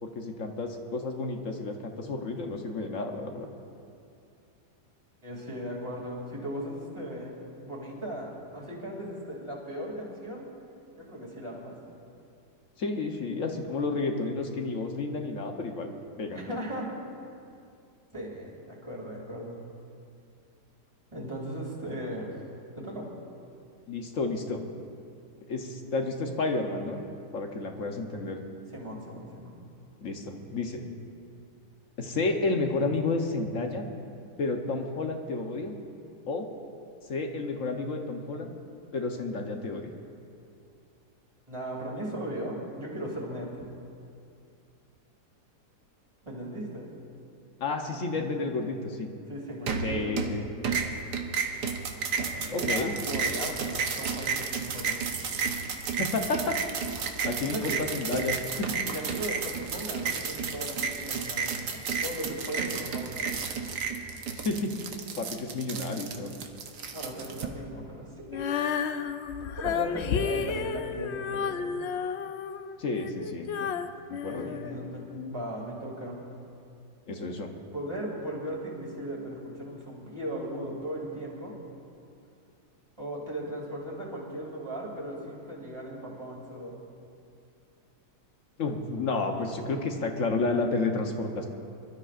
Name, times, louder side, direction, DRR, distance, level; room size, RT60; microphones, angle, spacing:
voice 1, 0.0-3.5 12.8-15.9 16.2-16.5 23.9-24.6 25.5-27.0 27.3-28.4 30.0-30.8 32.0-33.8 34.4-35.8 36.3-36.4 37.1-38.5 38.9-39.9 47.6-49.1 49.8-50.5 52.5-53.0 56.0-56.5 57.3-58.9 64.4-64.7 65.2-66.3 72.8-73.7 74.1-74.5 77.1-77.5 88.6-91.5, left 3 dB, 55° left, 3 dB, 1.2 m, -31 dB
voice 2, 5.2-10.5 11.0-11.8 16.3-17.0 18.1-19.6 21.1-22.4 22.7-23.1 28.7-29.5 41.5-43.6 46.2-46.9 49.3-50.4 52.2-55.1 57.4-57.8 58.9-63.4 66.9-68.6 69.4-71.7 74.3-76.2 77.7-81.6 83.0-86.8, right 1 dB, 15° right, -3 dB, 2.6 m, -37 dB
sound 1, 49.7-50.4 50.6-67.5, right 5 dB, 80° right, 1.5 m, -32 dB
Female singing, 68.3-75.3, left 7 dB, 90° left, 0.6 m, -32 dB
25.0 x 13.0 x 2.5 m, 2.5 s
omnidirectional pair, 1.7 m